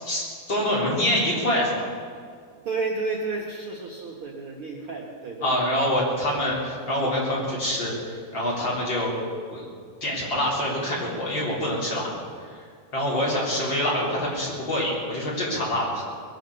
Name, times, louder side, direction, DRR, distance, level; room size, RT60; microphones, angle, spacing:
voice 1, 0.0-1.8 5.4-9.1 9.5-9.7 10.0-12.1 12.4-12.6 12.9-16.0, left 1 dB, 30° left, -6 dB, 4.1 m, -26 dB
voice 2, 2.6-5.6, right 3 dB, 85° right, -2 dB, 1.2 m, -31 dB
21.0 x 9.4 x 6.9 m, 2.1 s
omnidirectional pair, 4.6 m